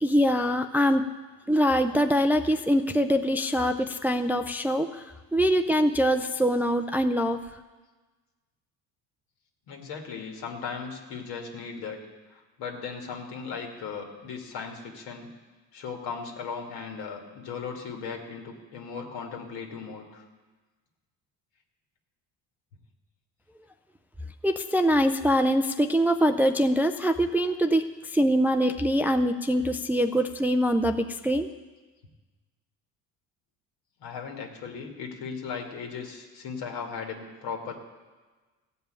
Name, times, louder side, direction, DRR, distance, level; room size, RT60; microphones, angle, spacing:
voice 1, 0.0-1.1 1.5-7.4 24.4-31.5, equal, 5° right, 6 dB, 0.3 m, -24 dB
voice 2, 9.7-15.3 15.7-20.3 34.0-37.7, left 5 dB, 80° left, 2 dB, 2.0 m, -37 dB
15.0 x 5.5 x 8.9 m, 1.3 s
cardioid pair, 120°, 36 cm